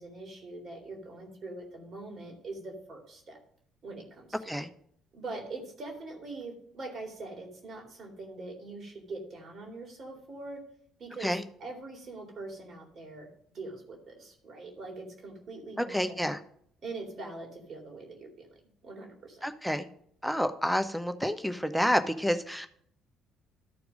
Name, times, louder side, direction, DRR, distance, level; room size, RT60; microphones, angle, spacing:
voice 1, 0.0-3.4 3.8-4.6 5.1-10.6 11.0-16.3 16.8-18.5 18.8-19.5, right 2 dB, 45° right, 1 dB, 2.5 m, -43 dB
voice 2, 15.8-16.4 19.4-19.9 20.2-22.7, equal, ahead, 9 dB, 0.8 m, -29 dB
12.5 x 4.7 x 5.1 m, 0.64 s
figure-of-eight pair, 50°, 0 cm